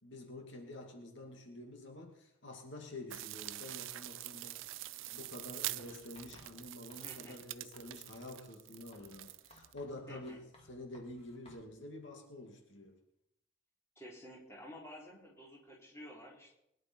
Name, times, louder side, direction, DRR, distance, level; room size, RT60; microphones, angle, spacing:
voice 1, 0.0-10.4 10.7-13.0, left 1 dB, 70° left, 2 dB, 2.4 m, -49 dB
sound 1, 3.1-9.7, right 16 dB, 80° right, 0.4 m, -45 dB
Writing, 5.8-7.5 7.7-8.3 8.9-11.7, left 1 dB, 30° left, 2.4 m, -62 dB
voice 2, 7.0-7.4 10.1-10.4 14.0-16.5, equal, 15° left, -3 dB, 4.0 m, -51 dB
21.5 x 11.0 x 4.6 m, 0.81 s
head